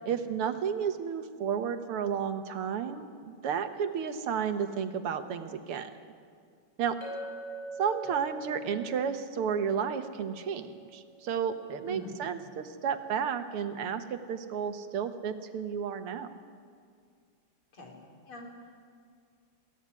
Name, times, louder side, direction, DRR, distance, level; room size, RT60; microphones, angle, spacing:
voice 1, 0.0-5.9 6.8-7.0 7.8-16.3, right 7 dB, 85° right, 9 dB, 2.1 m, -32 dB
Chink clink, 7.0-11.5, right 1 dB, 50° left, 6.5 m, -43 dB
voice 2, 11.9-12.3 17.7-18.0 18.3-18.8, left 1 dB, 70° left, 0 dB, 4.8 m, -45 dB
22.5 x 16.0 x 9.6 m, 2.2 s
omnidirectional pair, 2.4 m